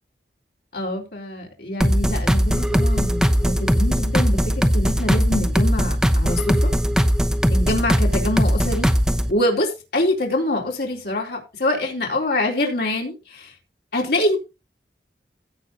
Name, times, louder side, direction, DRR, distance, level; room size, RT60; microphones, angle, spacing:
voice 1, 0.7-6.7 7.5-8.9 9.3-13.5 13.9-14.4, left 1 dB, 65° left, 3.8 m, -25 dB
sound 1, 1.8-9.3, equal, 5° right, 0.8 m, -19 dB
16.5 x 5.7 x 3.9 m
head